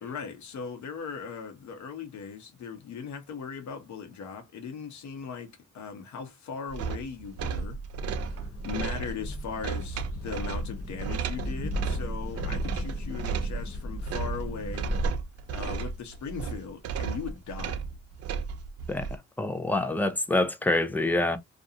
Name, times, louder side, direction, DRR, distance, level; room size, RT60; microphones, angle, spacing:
voice 1, 0.0-7.8 8.2-14.9 15.5-17.8, left 6 dB, 70° left, 1.0 m, -39 dB
sound 1, 6.7-19.2, right 5 dB, 55° right, 0.5 m, -34 dB
sound 2, 8.0-15.1, equal, 50° left, 1.2 m, -35 dB
voice 2, 19.4-21.4, left 2 dB, 5° left, 0.5 m, -26 dB
2.5 x 2.3 x 2.7 m
cardioid pair, 90°, 30 cm